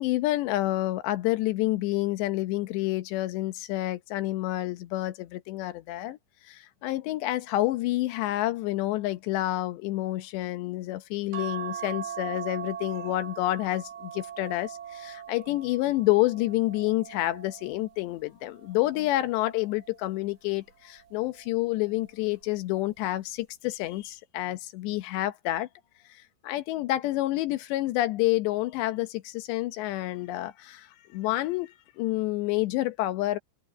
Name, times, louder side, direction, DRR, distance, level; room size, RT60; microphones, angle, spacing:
voice 1, 0.0-6.2 6.5-25.7 26.1-33.4, left 16 dB, 75° left, 2.9 m, -28 dB
sound 1, 11.3-17.9 18.6-20.0 21.2-21.7 22.0-22.1, right 9 dB, 60° right, 3.1 m, -40 dB
omnidirectional pair, 5.6 m